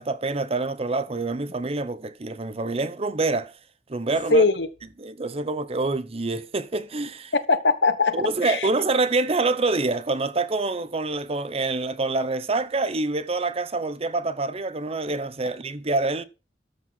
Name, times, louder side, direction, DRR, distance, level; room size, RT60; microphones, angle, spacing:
voice 1, 0.0-3.5 3.9-4.4 5.0-7.3 8.1-16.2, right 3 dB, 35° right, 0.7 m, -26 dB
voice 2, 4.3-4.7 7.5-8.7, left 3 dB, 75° left, 1.3 m, -21 dB
13.0 x 4.7 x 5.8 m
head